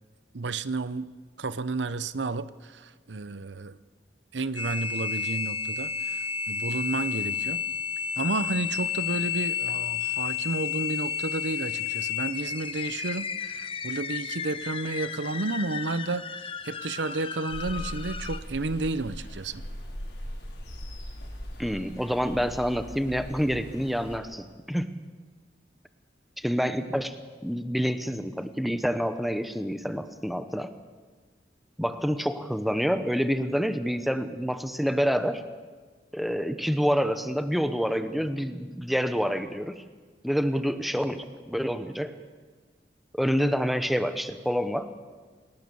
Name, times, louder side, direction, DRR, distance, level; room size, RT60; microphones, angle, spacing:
voice 1, 0.3-1.1 1.4-3.8 4.3-7.6 8.2-19.6, right 3 dB, 85° right, 14 dB, 0.8 m, -32 dB
sound 1, 4.5-18.4, left 7 dB, 30° left, 0.8 m, -32 dB
sound 2, 17.5-24.2, equal, 75° left, 5.5 m, -40 dB
voice 2, 21.6-24.9 26.4-27.2 27.4-30.7 31.8-35.4 36.1-39.8 40.2-42.1 43.1-44.9, equal, ahead, 9 dB, 1.0 m, -27 dB
27.5 x 18.0 x 7.0 m, 1.4 s
head